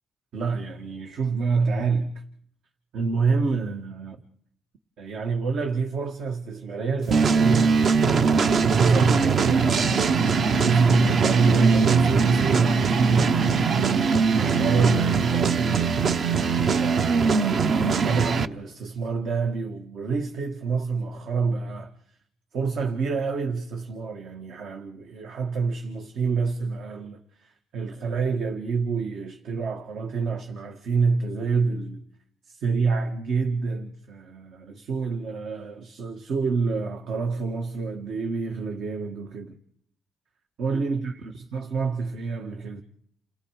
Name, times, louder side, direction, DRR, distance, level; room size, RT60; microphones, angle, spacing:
voice 1, 0.3-2.1 2.9-4.2 5.0-7.9 8.6-13.7 14.3-15.9 16.8-21.9 22.5-32.0 32.5-39.5 40.6-42.8, right 4 dB, 70° right, 1.7 m, -27 dB
sound 1, 7.1-18.5, right 5 dB, 55° right, 0.9 m, -21 dB
29.0 x 18.0 x 4.9 m
cardioid pair, 90°, 0 cm